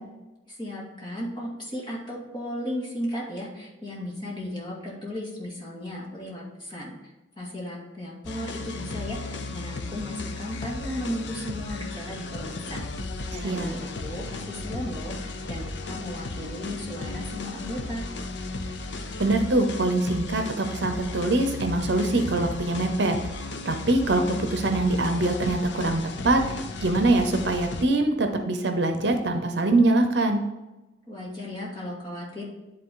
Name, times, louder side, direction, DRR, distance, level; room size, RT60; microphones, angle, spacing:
voice 1, 0.5-6.9 7.4-12.9 13.3-18.1 31.1-32.4, left 1 dB, 25° left, -4 dB, 2.3 m, -35 dB
sound 1, 8.2-27.9, left 3 dB, 65° left, 0.7 m, -35 dB
voice 2, 13.4-13.7 19.2-23.2 23.6-30.4, right 2 dB, 60° right, 6 dB, 0.8 m, -23 dB
10.5 x 3.9 x 3.8 m, 1.1 s
head